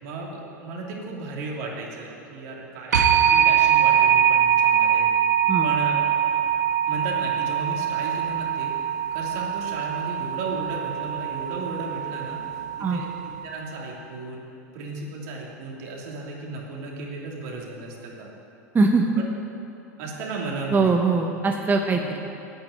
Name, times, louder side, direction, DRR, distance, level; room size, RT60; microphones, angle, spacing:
voice 1, 0.0-5.0 5.6-5.9 6.9-8.7 9.1-12.4 12.8-13.1 13.4-14.4 14.7-18.3 19.2-19.3 20.0-20.9 21.9-22.0, right 3 dB, 65° right, -2 dB, 2.8 m, -34 dB
sound 1, 2.9-13.5, right 9 dB, 80° right, 1.0 m, -23 dB
voice 2, 18.7-19.2 20.7-22.2, right 3 dB, 20° right, 2 dB, 0.9 m, -21 dB
9.5 x 8.8 x 9.0 m, 2.7 s
hypercardioid pair, 85°, 9 cm